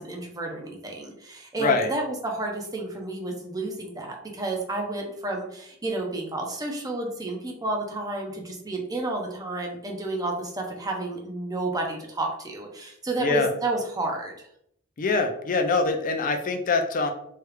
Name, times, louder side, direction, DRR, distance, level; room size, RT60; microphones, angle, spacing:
voice 1, 0.0-14.3, right 2 dB, 20° right, 1 dB, 0.6 m, -31 dB
voice 2, 1.6-1.9 13.2-13.5 15.0-17.1, left 4 dB, 40° left, 5 dB, 0.4 m, -24 dB
3.2 x 2.4 x 3.2 m, 0.72 s
head